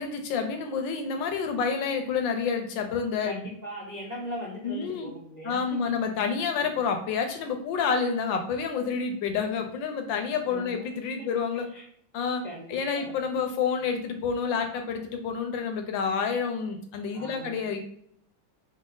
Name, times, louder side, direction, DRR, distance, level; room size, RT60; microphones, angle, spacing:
voice 1, 0.0-3.4 4.6-5.1 5.4-11.7 12.1-12.4 12.7-17.8, left 6 dB, 70° left, 5 dB, 1.3 m, -29 dB
voice 2, 3.2-5.8 6.6-6.7 10.4-10.9 11.2-11.3 11.7-11.8 12.4-13.1 17.1-17.7, equal, 60° right, -5 dB, 0.4 m, -39 dB
4.2 x 2.5 x 3.8 m, 0.67 s
omnidirectional pair, 2.2 m